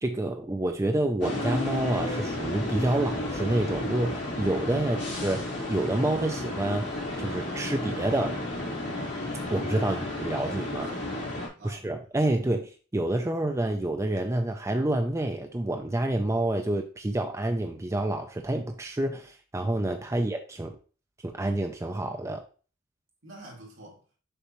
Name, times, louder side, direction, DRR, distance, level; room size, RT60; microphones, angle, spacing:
voice 1, 0.0-6.8 7.2-8.4 9.5-10.9 11.6-20.8 21.2-22.4, right 1 dB, 15° right, 0.5 m, -28 dB
sound 1, 1.2-11.5, left 1 dB, 65° left, 2.9 m, -32 dB
voice 2, 10.4-11.9 23.2-24.0, right 1 dB, 70° right, 2.6 m, -47 dB
6.7 x 5.3 x 3.1 m
head